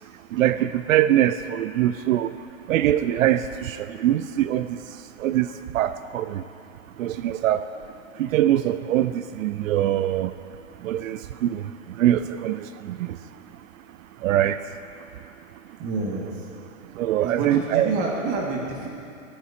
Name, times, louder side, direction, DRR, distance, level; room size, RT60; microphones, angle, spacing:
voice 1, 0.3-2.3 2.7-4.8 5.2-5.5 5.7-6.4 7.0-7.6 8.2-10.3 10.8-11.6 12.0-13.1 14.2-14.6 17.0-17.9, right 12 dB, 75° right, 12 dB, 0.5 m, -23 dB
voice 2, 15.8-16.5 17.2-18.9, right 3 dB, 35° right, -3 dB, 2.0 m, -28 dB
25.0 x 10.0 x 2.8 m, 2.6 s
hypercardioid pair, 135°, 40 cm